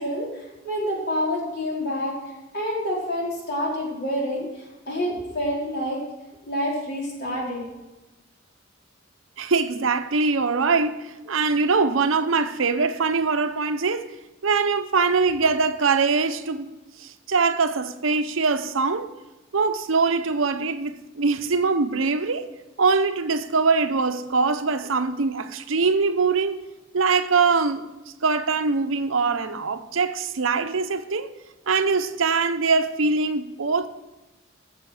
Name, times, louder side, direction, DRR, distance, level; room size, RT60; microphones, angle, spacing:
voice 1, 0.0-2.1 2.5-6.0 6.4-7.6, equal, 55° left, 4.0 m, -28 dB
voice 2, 9.4-14.1 14.4-16.7 17.0-19.1 19.5-22.5 22.8-26.6 26.9-27.9 28.2-31.3 31.7-33.9, right 4 dB, 90° right, 0.8 m, -22 dB
13.0 x 7.6 x 4.9 m
head